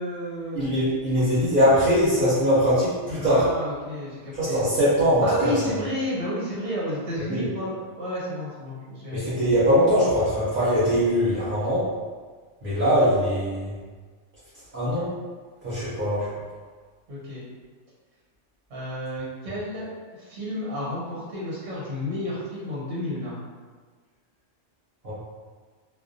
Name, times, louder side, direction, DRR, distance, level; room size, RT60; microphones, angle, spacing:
voice 1, 0.0-0.7 3.2-4.7 5.2-9.2 17.1-17.4 18.7-19.9 20.2-23.4, equal, 70° right, -7 dB, 1.2 m, -31 dB
voice 2, 0.5-3.5 4.3-5.5 7.3-7.5 9.1-11.9 12.6-13.7 14.7-15.1 15.6-16.3 25.0-25.1, equal, 50° right, -11 dB, 0.9 m, -21 dB
2.4 x 2.2 x 2.5 m, 1.4 s
omnidirectional pair, 1.2 m